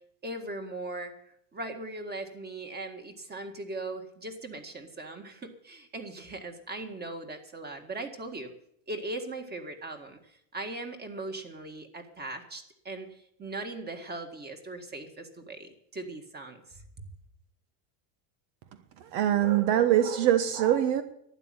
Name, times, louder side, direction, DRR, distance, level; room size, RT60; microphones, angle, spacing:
voice 1, 0.2-1.1 1.5-8.5 8.9-16.8, right 2 dB, 20° right, 5 dB, 1.9 m, -39 dB
voice 2, 19.0-21.0, right 11 dB, 65° right, 10 dB, 1.3 m, -23 dB
12.0 x 9.2 x 8.9 m, 0.71 s
supercardioid pair, 135°, 49 cm